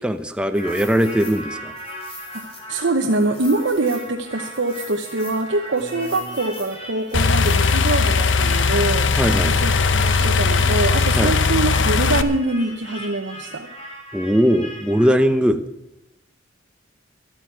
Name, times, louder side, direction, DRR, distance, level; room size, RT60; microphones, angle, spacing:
voice 1, 0.0-1.7 9.2-9.5 11.2-11.3 14.1-15.6, equal, 5° right, 8 dB, 0.7 m, -19 dB
sound 1, 0.5-15.3, equal, 30° left, 3.5 m, -38 dB
voice 2, 2.3-9.1 9.4-13.7, right 2 dB, 65° right, 3 dB, 1.0 m, -24 dB
sound 2, 5.8-6.6 7.1-8.6 9.0-11.0 11.2-12.3, right 1 dB, 50° right, 1.4 m, -40 dB
sound 3, 7.1-12.2, left 4 dB, 70° left, 0.8 m, -18 dB
12.5 x 9.1 x 9.2 m, 0.88 s
head